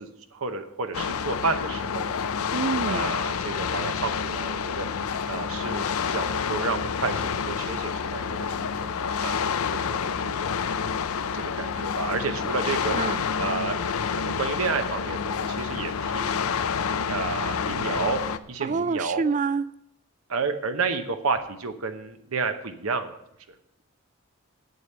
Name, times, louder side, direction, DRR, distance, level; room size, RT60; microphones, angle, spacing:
voice 1, 0.0-2.1 2.9-4.9 5.3-8.9 9.2-10.7 11.3-13.0 13.4-16.4 17.0-18.2 18.5-19.2 20.3-23.2, right 4 dB, 80° right, 8 dB, 0.9 m, -31 dB
sound 1, 0.9-18.4, left 6 dB, 85° left, 0.5 m, -28 dB
voice 2, 2.5-3.1 12.9-13.2 18.6-19.7, right 5 dB, 35° right, 17 dB, 0.3 m, -27 dB
8.7 x 7.8 x 6.7 m, 0.76 s
head